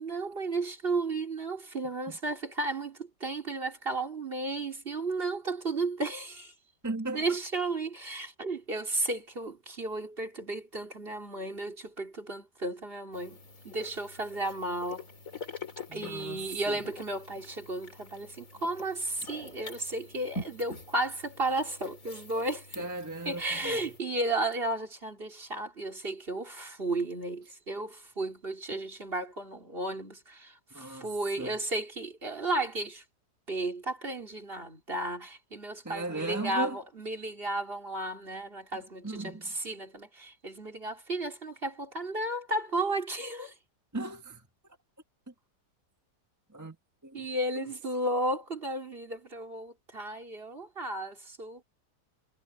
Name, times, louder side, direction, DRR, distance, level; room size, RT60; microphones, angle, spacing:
voice 1, 0.0-6.5 7.1-13.4 13.6-15.0 15.9-22.8 23.2-33.0 33.5-43.5 47.1-51.6, right 2 dB, 35° right, 3.2 m, -34 dB
voice 2, 6.8-7.4 15.9-16.8 22.8-23.9 30.7-31.6 35.8-36.8 39.0-39.5 43.9-44.5 45.3-45.4 46.5-46.8 47.0-47.3 47.6-47.7, right 2 dB, 10° right, 1.6 m, -37 dB
sound 1, 13.1-24.0, left 2 dB, 50° left, 3.9 m, -46 dB
omnidirectional pair, 1.8 m